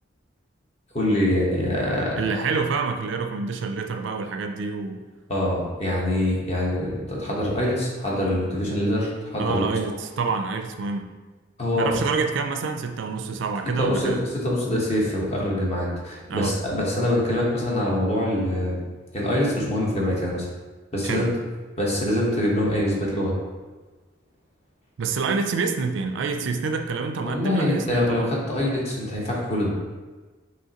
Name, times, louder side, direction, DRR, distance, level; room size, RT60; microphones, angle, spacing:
voice 1, 0.9-2.2 5.3-9.7 11.6-12.0 13.8-18.8 19.1-20.5 20.9-21.3 21.8-23.4 27.2-29.7, left 1 dB, 35° left, -4 dB, 1.0 m, -24 dB
voice 2, 2.2-5.0 9.4-11.1 11.8-14.2 16.3-16.6 21.0-21.3 25.0-28.3, right 4 dB, 70° right, 6 dB, 0.4 m, -27 dB
5.6 x 3.0 x 2.8 m, 1.3 s
head